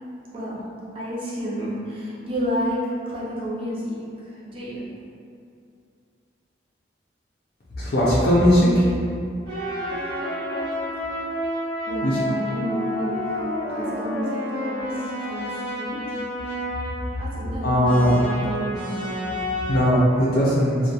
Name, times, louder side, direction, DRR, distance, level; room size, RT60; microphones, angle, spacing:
voice 1, 0.9-4.9 11.0-11.4 11.9-16.0 17.1-17.7 18.3-18.9, equal, 30° right, -8 dB, 0.5 m, -31 dB
voice 2, 7.8-8.9 12.0-12.2 17.6-18.2 19.7-20.8, equal, 55° left, -9 dB, 0.5 m, -18 dB
sound 1, 9.5-17.4 17.8-19.8, equal, 75° right, 1.1 m, -29 dB
2.2 x 2.2 x 2.7 m, 2.4 s
head